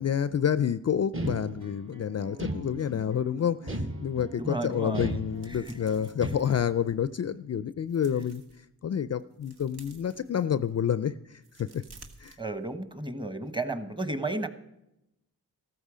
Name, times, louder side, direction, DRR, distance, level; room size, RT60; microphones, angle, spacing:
voice 1, 0.0-8.4 8.8-11.8 12.2-12.4, left 8 dB, 40° left, 15 dB, 0.4 m, -29 dB
sound 1, 1.1-1.9 2.4-3.2 3.7-4.5 4.9-5.7 6.2-6.8, right 1 dB, 35° right, 1.4 m, -35 dB
sound 2, 1.2-6.3, right 4 dB, 50° right, 1.5 m, -50 dB
voice 2, 4.4-5.2 5.5-5.8 8.1-8.2 12.4-14.5, right 2 dB, 10° right, 10 dB, 1.2 m, -33 dB
sound 3, 5.3-7.3 7.7-8.6 9.1-10.8 11.3-13.0 13.3-13.5, right 3 dB, 75° right, 1.7 m, -54 dB
14.5 x 13.5 x 5.0 m, 0.88 s
cardioid pair, 75°, 39 cm